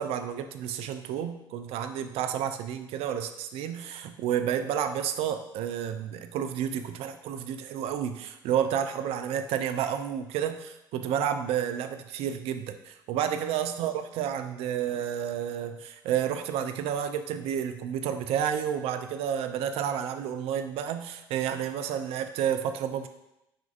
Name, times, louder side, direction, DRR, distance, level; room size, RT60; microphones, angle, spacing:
voice 1, 0.0-23.1, right 9 dB, 55° right, 8 dB, 0.4 m, -30 dB
6.2 x 2.5 x 2.4 m, 0.87 s
hypercardioid pair, 55°, 12 cm